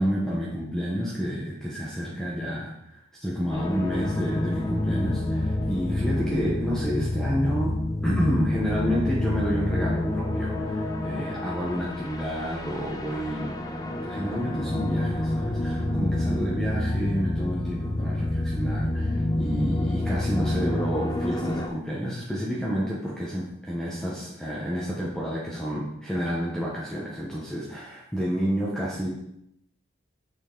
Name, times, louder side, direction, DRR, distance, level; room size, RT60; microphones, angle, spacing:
voice 1, 0.0-13.6 14.0-29.1, equal, 5° left, -6 dB, 0.9 m, -29 dB
sound 1, 3.5-21.7, left 1 dB, 20° left, 0.5 m, -28 dB
6.8 x 5.3 x 3.8 m, 0.79 s
head